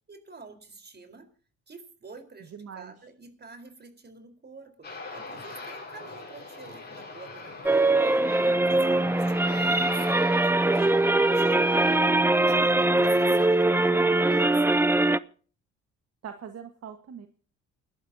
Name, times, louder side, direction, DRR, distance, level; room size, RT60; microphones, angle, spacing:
voice 1, 0.1-1.3 1.7-10.9 11.3-12.0 12.4-15.2, right 4 dB, 35° right, 7 dB, 4.3 m, -47 dB
voice 2, 2.5-2.9 16.2-17.3, right 7 dB, 55° right, 7 dB, 1.6 m, -41 dB
Aircraft, 4.8-13.5, left 3 dB, 35° left, 6.9 m, -42 dB
sound 1, 7.7-15.2, right 2 dB, 10° right, 0.6 m, -22 dB
28.5 x 12.0 x 2.8 m, 0.42 s
cardioid pair, 90°, 30 cm